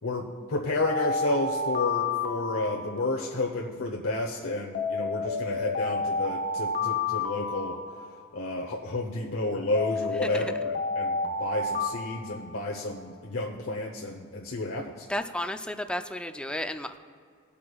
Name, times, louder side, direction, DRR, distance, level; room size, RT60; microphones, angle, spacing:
voice 1, 0.0-7.8 8.3-15.1, left 2 dB, 70° left, -1 dB, 0.9 m, -31 dB
Alarm, 0.8-3.4 4.7-8.4 9.7-13.0, left 3 dB, 50° left, 0.8 m, -31 dB
voice 2, 10.2-10.5 15.1-17.0, left 1 dB, 5° left, 8 dB, 0.4 m, -33 dB
22.5 x 8.5 x 2.4 m, 2.2 s
head